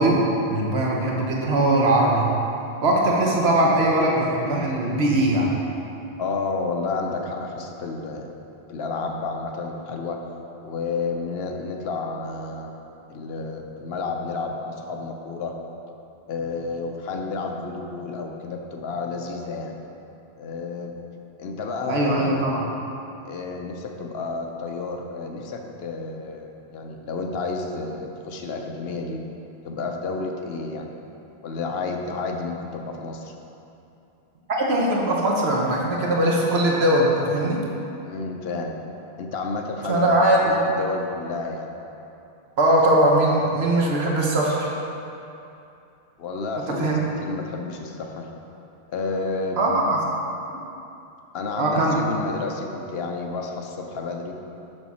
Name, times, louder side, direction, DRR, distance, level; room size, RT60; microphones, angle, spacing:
voice 1, 0.0-2.2 2.8-5.5 21.9-22.7 34.5-37.6 39.9-40.5 42.6-44.7 46.7-47.0 49.6-50.0 51.6-52.0, right 1 dB, 85° right, -2 dB, 1.2 m, -20 dB
voice 2, 6.2-8.4 8.7-10.2 10.6-12.8 13.1-15.5 16.3-19.8 20.4-21.0 21.4-22.5 23.2-29.2 29.6-30.9 31.4-33.3 38.0-38.8 39.2-41.7 46.2-48.3 48.9-49.6 51.3-54.4, left 3 dB, 75° left, 3 dB, 0.9 m, -31 dB
6.9 x 6.2 x 4.1 m, 2.8 s
omnidirectional pair, 1.0 m